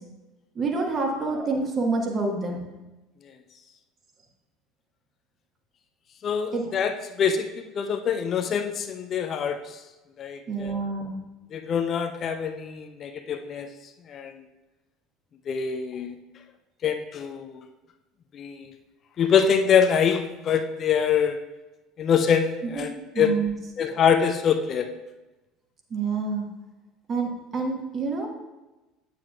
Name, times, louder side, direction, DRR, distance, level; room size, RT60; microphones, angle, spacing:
voice 1, 0.5-2.7 6.5-6.7 10.5-11.2 22.6-22.9 23.1-23.5 25.9-26.5 27.1-28.3, right 4 dB, 35° right, 1 dB, 1.4 m, -27 dB
voice 2, 6.2-7.5 7.7-9.6 10.2-10.8 11.5-13.7 14.1-14.3 15.5-16.2 16.8-17.6 18.3-18.7 19.2-21.4 22.0-23.5 23.8-24.9, left 7 dB, 40° left, 6 dB, 0.5 m, -24 dB
8.6 x 7.6 x 2.4 m, 1.1 s
figure-of-eight pair, 65°, 0 cm